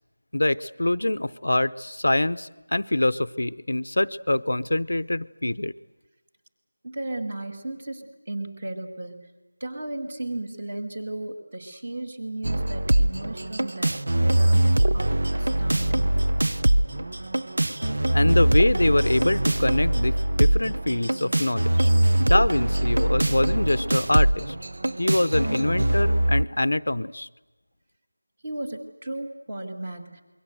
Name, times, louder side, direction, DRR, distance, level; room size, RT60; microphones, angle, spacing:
voice 1, 0.3-5.7 18.1-21.9 22.2-24.6 25.0-27.3, left 1 dB, 70° left, 15 dB, 0.8 m, -24 dB
voice 2, 6.8-9.3 9.6-16.2 28.4-30.2, right 2 dB, 20° right, 4 dB, 1.9 m, -35 dB
sound 1, 12.4-26.4, right 1 dB, 45° right, 0.9 m, -22 dB
27.5 x 22.5 x 7.9 m, 1.2 s
figure-of-eight pair, 180°, 0 cm